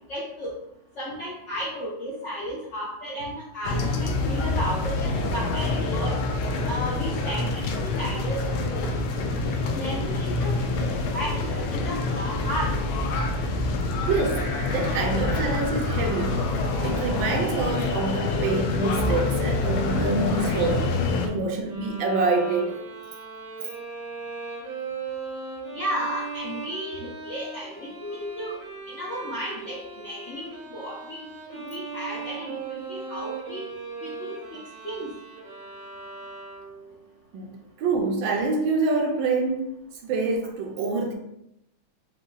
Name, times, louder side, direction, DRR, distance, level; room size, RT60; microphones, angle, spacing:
voice 1, 0.1-0.5 1.0-6.2 6.7-8.9 9.7-12.8 25.7-28.6 28.9-33.6 34.0-34.6 34.8-35.1, equal, 65° left, 0.7 m, -34 dB
sound 1, 3.6-21.3, left 2 dB, 90° left, 1.4 m, -26 dB
voice 2, 14.1-16.5 16.8-21.0 21.2-22.8 37.3-39.7 40.0-41.1, right 3 dB, 80° right, 1.4 m, -26 dB
sound 2, 14.3-20.7, equal, 35° left, 0.8 m, -36 dB
Bowed string instrument, 21.6-36.9, right 4 dB, 55° right, 0.9 m, -38 dB
4.9 x 2.2 x 3.9 m
omnidirectional pair, 2.1 m